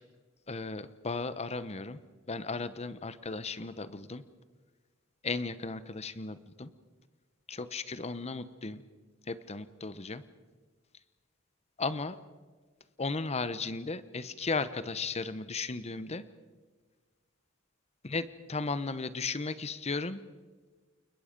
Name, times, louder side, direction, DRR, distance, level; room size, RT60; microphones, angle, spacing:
voice 1, 0.5-2.0 2.3-4.2 5.2-6.7 7.5-8.8 9.3-10.2 11.8-12.2 13.0-16.2 18.1-20.2, left 3 dB, 30° left, 14 dB, 0.9 m, -35 dB
29.5 x 22.0 x 5.2 m, 1.4 s
head